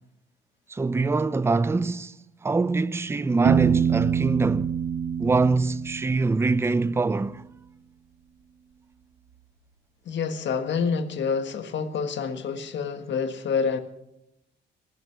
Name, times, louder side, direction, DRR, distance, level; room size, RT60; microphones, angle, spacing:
voice 1, 0.7-2.2 2.4-4.7 5.2-7.4, right 3 dB, 15° right, 0.5 m, -24 dB
Piano, 3.4-7.1, right 8 dB, 65° right, 1.3 m, -26 dB
voice 2, 10.0-13.8, left 5 dB, 65° left, 1.6 m, -27 dB
20.0 x 8.1 x 7.0 m
cardioid pair, 90°, 20 cm